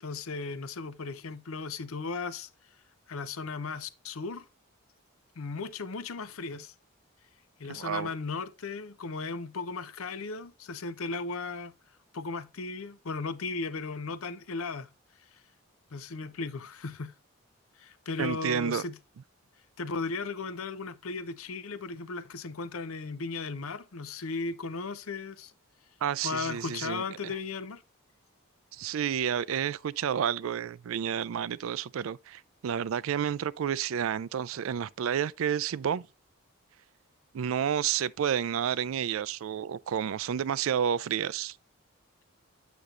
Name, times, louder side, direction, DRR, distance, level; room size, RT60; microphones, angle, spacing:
voice 1, 0.0-2.5 3.1-4.4 5.4-6.7 7.6-11.7 12.1-14.9 15.9-17.1 17.8-19.0 19.8-25.5 26.2-27.8, left 4 dB, 80° left, 0.6 m, -36 dB
voice 2, 7.7-8.1 18.2-18.9 26.0-27.3 28.7-36.1 37.3-41.6, right 8 dB, 70° right, 0.3 m, -30 dB
8.3 x 6.0 x 2.5 m
head